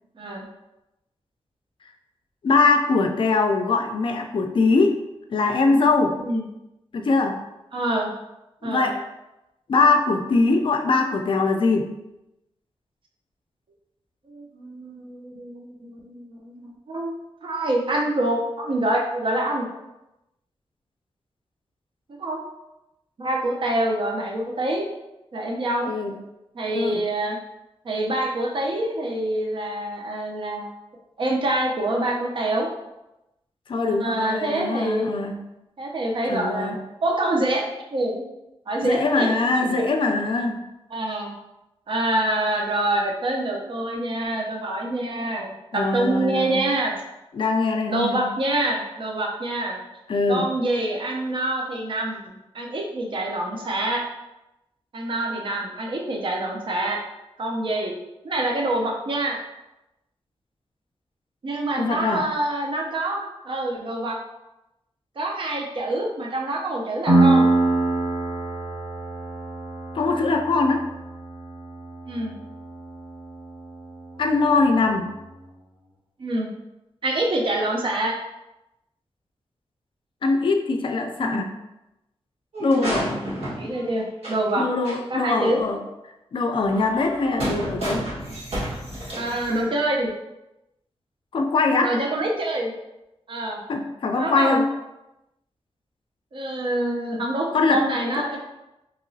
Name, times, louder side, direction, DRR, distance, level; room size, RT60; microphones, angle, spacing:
voice 1, 0.2-0.5 6.2-6.5 7.7-8.1 8.6-8.9 14.3-17.1 17.4-19.7 22.2-22.4 23.2-24.8 25.3-25.9 26.5-27.4 27.8-30.7 31.2-32.7 34.0-35.1 35.8-36.8 37.0-37.7 37.9-38.3 38.7-39.5 39.8-39.9 40.9-41.4 41.9-47.0 47.9-49.8 50.3-54.0 54.9-57.0 57.4-58.0 58.2-59.4 61.4-64.2 65.2-67.5 72.1-72.4 76.2-76.5 77.0-78.2 81.2-81.5 82.7-83.3 83.6-84.6 85.1-85.6 89.1-90.1 91.8-92.7 93.3-93.6 94.2-94.6 96.3-98.4, right 1 dB, 55° right, 0 dB, 0.6 m, -26 dB
voice 2, 2.4-5.0 5.3-6.2 6.9-7.4 8.6-9.0 9.7-11.9 25.8-26.2 26.7-27.0 33.7-35.4 36.3-36.8 38.8-40.6 45.7-46.6 47.3-48.3 50.1-50.5 61.8-62.3 69.9-70.9 74.2-75.1 80.2-81.5 82.6-83.1 84.6-85.8 86.3-88.1 91.3-92.0 93.7-94.7 97.5-97.9 98.2-98.3, left 3 dB, 55° left, 4 dB, 0.4 m, -22 dB
Piano, 67.1-74.5, right 2 dB, 15° right, 0.7 m, -25 dB
sound 1, 82.5-84.5 84.8-85.0 85.4-85.5 86.6-89.6, right 1 dB, 75° right, 1.4 m, -31 dB
2.9 x 2.8 x 2.6 m, 0.94 s
wide cardioid pair, 130°, 10 cm